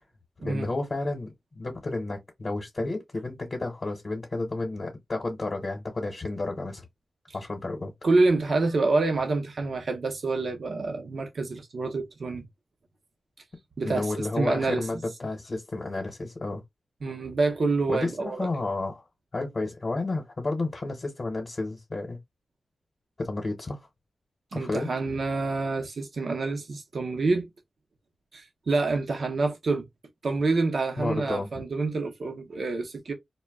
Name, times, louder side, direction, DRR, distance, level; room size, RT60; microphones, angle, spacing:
voice 1, 0.4-6.8 7.3-7.9 13.8-16.6 17.9-19.0 19.3-22.2 23.2-23.8 24.5-24.9 31.0-31.6, left 2 dB, 45° left, 0.9 m, -31 dB
voice 2, 8.0-12.4 13.8-14.1 14.4-14.9 17.0-18.5 24.5-27.5 28.3-29.8 30.2-33.1, right 3 dB, 60° right, 0.6 m, -27 dB
2.1 x 2.1 x 3.4 m
cardioid pair, 70°, 0 cm